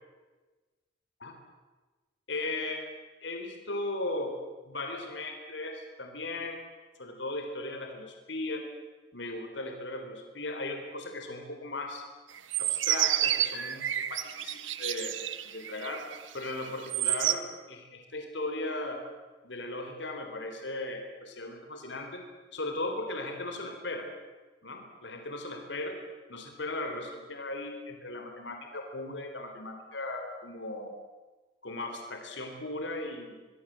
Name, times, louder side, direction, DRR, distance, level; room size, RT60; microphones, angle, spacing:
voice 1, 2.3-2.9 3.2-4.3 4.6-6.6 7.0-8.6 9.1-12.0 12.6-15.2 15.5-16.0 16.3-19.0 19.4-22.2 22.5-24.1 24.6-26.0 26.3-30.9 31.6-33.4, left 2 dB, 70° left, 4 dB, 3.9 m, -37 dB
sound 1, 12.3-17.3, right 12 dB, 90° right, 1.3 m, -30 dB
24.0 x 23.5 x 7.7 m, 1.3 s
head